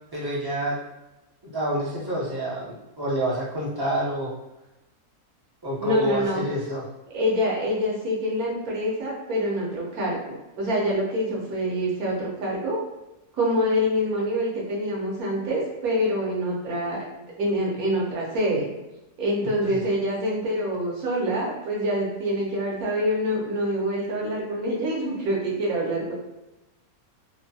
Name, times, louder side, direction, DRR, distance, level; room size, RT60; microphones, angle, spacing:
voice 1, 0.1-0.8 1.4-4.3 5.6-6.8 19.7-19.8, right 1 dB, 30° right, -7 dB, 0.4 m, -28 dB
voice 2, 5.8-6.4 7.1-12.8 13.3-17.0 17.4-18.7 19.2-26.1, equal, 70° right, -4 dB, 1.2 m, -26 dB
2.9 x 2.2 x 2.6 m, 1.0 s
omnidirectional pair, 1.6 m